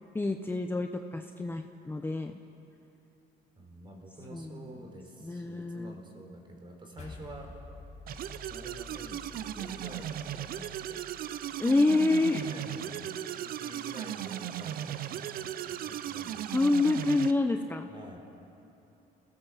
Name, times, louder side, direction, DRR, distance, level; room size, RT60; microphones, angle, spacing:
voice 1, 0.1-2.3 4.3-4.6 5.2-6.0 11.6-12.4 16.5-17.9, left 2 dB, 15° left, 5 dB, 0.8 m, -27 dB
voice 2, 3.6-7.5 8.5-11.0 11.4-11.6 12.3-16.5 17.9-18.2, right 1 dB, 30° right, 3 dB, 4.1 m, -48 dB
sound 1, 7.0-11.5, left 3 dB, 40° left, 4.9 m, -50 dB
sound 2, 8.1-17.3, right 11 dB, 60° right, 0.7 m, -37 dB
27.0 x 17.0 x 7.4 m, 2.9 s
cardioid pair, 110°, 17 cm